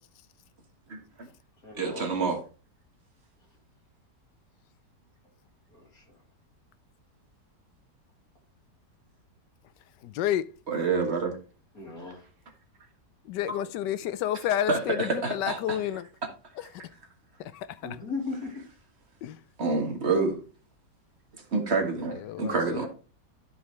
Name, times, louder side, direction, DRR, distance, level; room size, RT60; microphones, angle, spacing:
voice 1, 0.9-1.3 1.8-2.4 10.7-11.4 14.7-15.8 19.6-20.4 21.5-22.9, right 4 dB, 40° right, 1.7 m, -27 dB
voice 2, 1.6-2.0 5.7-6.2 11.7-12.2 17.8-18.5 22.4-22.9, left 3 dB, 55° left, 3.6 m, -37 dB
voice 3, 10.0-10.5 13.2-16.1 16.6-16.8 17.4-17.8 19.2-19.4 22.1-22.8, left 11 dB, 90° left, 1.2 m, -30 dB
12.0 x 4.9 x 3.2 m
omnidirectional pair, 1.8 m